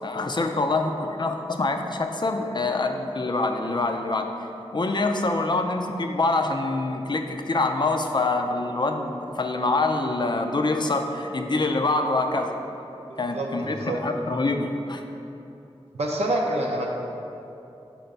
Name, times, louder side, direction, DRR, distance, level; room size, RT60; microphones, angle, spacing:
voice 1, 0.0-4.3 4.7-12.6 13.2-15.0, left 2 dB, 45° left, 4 dB, 0.5 m, -25 dB
voice 2, 13.3-14.0 15.9-16.9, right 1 dB, 75° right, -2 dB, 0.5 m, -26 dB
4.9 x 4.4 x 5.3 m, 2.9 s
wide cardioid pair, 75°, 11 cm